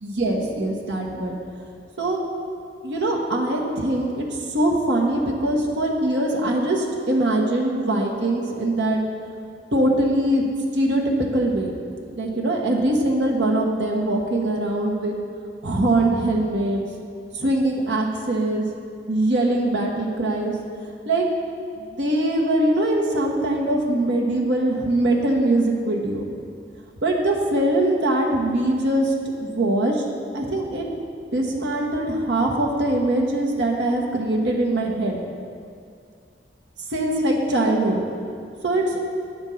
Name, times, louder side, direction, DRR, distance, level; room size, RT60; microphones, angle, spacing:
voice 1, 0.0-1.4 2.0-2.2 2.8-9.0 9.7-10.4 10.7-11.7 12.2-15.2 15.6-16.8 17.3-18.6 19.1-20.5 21.1-21.3 21.8-26.2 27.0-29.1 29.4-30.0 30.3-30.9 31.3-35.2 36.9-38.0 38.6-39.0, right 1 dB, 85° right, -1 dB, 1.2 m, -22 dB
9.6 x 4.5 x 7.1 m, 2.3 s
head